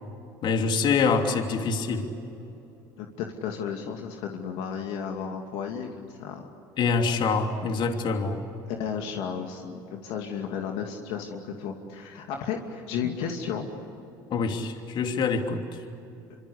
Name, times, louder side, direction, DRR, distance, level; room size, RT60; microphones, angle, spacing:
voice 1, 0.4-2.1 6.8-8.4 14.3-15.6, left 4 dB, 50° left, 4 dB, 3.0 m, -25 dB
voice 2, 3.0-6.4 8.7-13.7, left 7 dB, 70° left, 2 dB, 2.6 m, -33 dB
27.0 x 25.5 x 8.4 m, 2.9 s
supercardioid pair, 85°, 10 cm